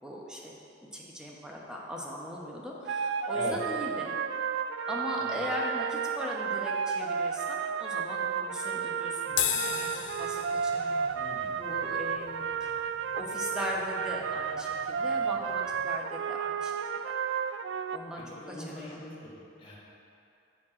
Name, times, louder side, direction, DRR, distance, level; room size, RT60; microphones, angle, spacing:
voice 1, 0.0-0.5 0.9-4.1 4.9-9.9 10.2-11.1 11.6-12.7 13.2-16.7 17.9-19.0, equal, 5° right, -3 dB, 0.9 m, -39 dB
sound 1, 2.9-18.0, right 6 dB, 75° right, 0.3 m, -32 dB
sound 2, 9.3-15.9, left 9 dB, 75° left, 0.5 m, -38 dB
voice 2, 11.1-11.5 18.3-19.8, left 2 dB, 30° left, -5 dB, 1.6 m, -42 dB
7.3 x 5.9 x 4.9 m, 2.6 s
head